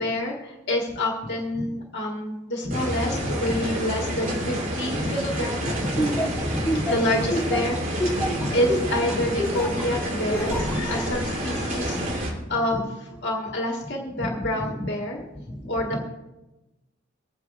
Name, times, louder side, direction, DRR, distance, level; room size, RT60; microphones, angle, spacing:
voice 1, 0.0-5.7 6.8-8.2 8.5-10.6 10.9-12.8 13.2-15.2 15.7-16.1, left 1 dB, 60° left, -1 dB, 1.7 m, -28 dB
sound 1, 2.7-12.3, equal, 45° right, 3.5 m, -29 dB
voice 2, 3.2-3.6 4.3-4.5 4.9-5.1 5.6-6.1 6.3-6.8 8.1-8.5 10.3-12.0 12.7-12.8 14.2-14.3 15.5-15.7, left 1 dB, 25° left, -2 dB, 3.7 m, -33 dB
Laughter, 6.0-9.8 10.3-10.8, equal, 10° left, 2.0 m, -26 dB
24.5 x 9.4 x 2.5 m, 1.0 s
head